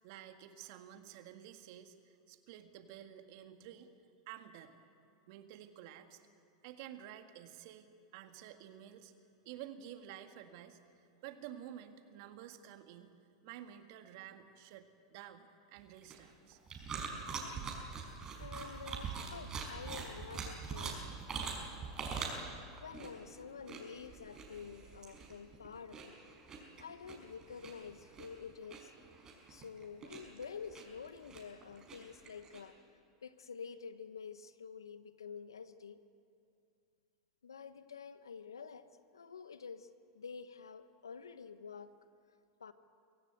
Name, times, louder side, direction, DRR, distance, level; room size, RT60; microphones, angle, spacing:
voice 1, 0.0-3.9 4.3-4.8 5.3-6.2 6.6-9.1 9.5-13.1 13.4-16.6, right 11 dB, 60° right, 7 dB, 1.8 m, -51 dB
sound 1, 15.8-32.6, right 5 dB, 30° right, 5.4 m, -44 dB
voice 2, 18.4-21.1 22.8-26.2 26.8-28.9 29.5-32.8 33.2-36.0 37.4-38.9 39.1-41.9 42.6-42.7, left 6 dB, 85° left, 12 dB, 1.1 m, -49 dB
24.0 x 16.5 x 8.2 m, 2.5 s
hypercardioid pair, 95°, 2 cm